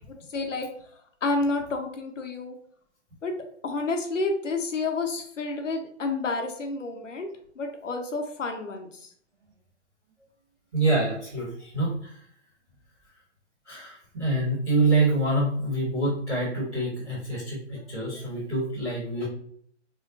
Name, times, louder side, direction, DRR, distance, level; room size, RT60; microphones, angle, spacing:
voice 1, 0.3-0.7 1.2-2.6 3.2-3.3 3.6-7.3 7.6-9.1, left 3 dB, 80° left, 4 dB, 1.0 m, -29 dB
voice 2, 10.7-12.2 13.6-19.2, right 2 dB, 5° right, -16 dB, 0.4 m, -26 dB
3.8 x 3.3 x 2.6 m, 0.64 s
hypercardioid pair, 145°, 37 cm